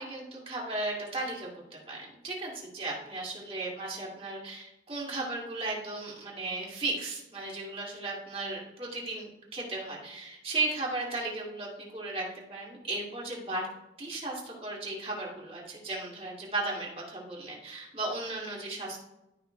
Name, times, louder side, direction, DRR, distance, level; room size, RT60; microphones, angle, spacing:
voice 1, 0.0-2.0 2.2-13.6 14.0-19.0, right 2 dB, 30° right, -3 dB, 2.2 m, -35 dB
13.0 x 5.7 x 2.2 m, 0.95 s
head